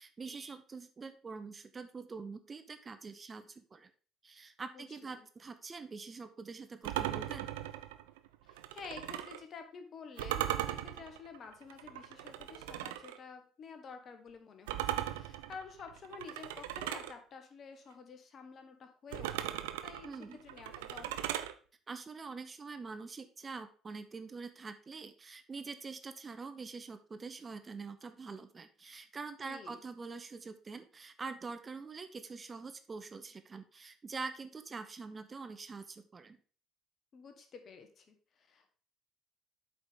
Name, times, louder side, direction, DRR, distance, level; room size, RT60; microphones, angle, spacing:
voice 1, 0.0-3.9 4.2-7.5 20.0-20.4 21.9-36.4, right 4 dB, 30° right, 9 dB, 0.7 m, -45 dB
voice 2, 4.7-5.3 8.5-21.3 29.4-29.8 37.1-38.7, left 5 dB, 45° left, 6 dB, 1.3 m, -50 dB
sound 1, 6.8-9.4 10.2-13.2 14.7-17.1 19.1-21.5, right 12 dB, 70° right, 0.4 m, -38 dB
8.1 x 5.0 x 3.7 m, 0.41 s
figure-of-eight pair, 55°, 0 cm